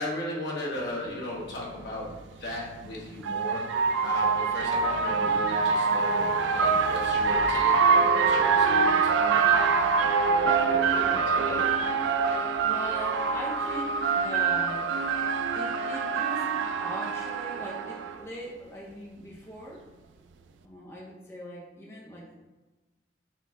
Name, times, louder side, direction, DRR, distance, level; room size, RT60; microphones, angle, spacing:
voice 1, 0.0-3.6 4.0-9.5 10.2-11.7, left 1 dB, 70° left, -4 dB, 1.1 m, -36 dB
sound 1, 1.1-1.2 2.6-18.2, right 5 dB, 85° right, 0.3 m, -25 dB
voice 2, 12.6-14.9 15.5-16.5 16.8-19.8 20.6-22.3, equal, 15° left, -4 dB, 0.6 m, -40 dB
4.1 x 3.0 x 3.6 m, 1.2 s
head